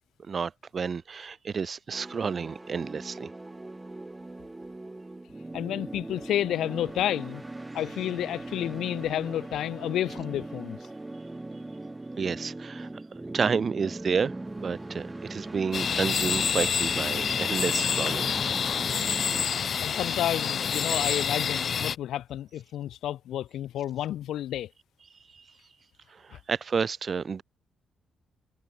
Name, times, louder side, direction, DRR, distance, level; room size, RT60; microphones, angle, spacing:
voice 1, 0.3-3.3 12.2-12.9 13.3-18.3 19.0-19.2 25.3-25.4 26.1-27.4, right 5 dB, 30° right, 1.8 m, -30 dB
sound 1, 1.9-19.5, right 2 dB, 10° right, 3.6 m, -40 dB
voice 2, 5.5-7.4 7.7-10.8 19.8-24.7, left 12 dB, 75° left, 3.1 m, -30 dB
sound 2, 15.7-22.0, left 7 dB, 40° left, 2.2 m, -27 dB
cardioid pair, 165°, 0 cm